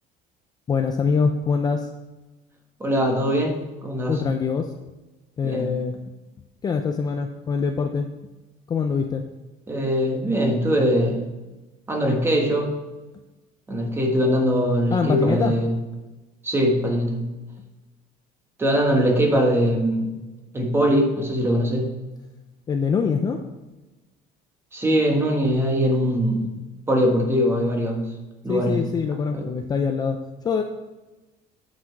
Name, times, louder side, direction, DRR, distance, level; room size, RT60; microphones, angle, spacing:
voice 1, 0.7-1.9 4.1-4.7 5.4-6.0 6.6-8.1 8.7-9.3 14.9-15.5 22.7-23.4 28.5-30.6, left 5 dB, 25° left, 5 dB, 0.5 m, -24 dB
voice 2, 2.8-4.2 5.4-5.7 9.7-11.3 11.9-12.7 13.7-15.7 16.4-17.2 18.6-20.2 20.5-21.9 24.7-26.5 26.9-28.0 28.4-28.8 29.3-29.5, equal, 15° right, 2 dB, 1.4 m, -21 dB
8.7 x 6.1 x 4.6 m, 1.1 s
cardioid pair, 155°, 17 cm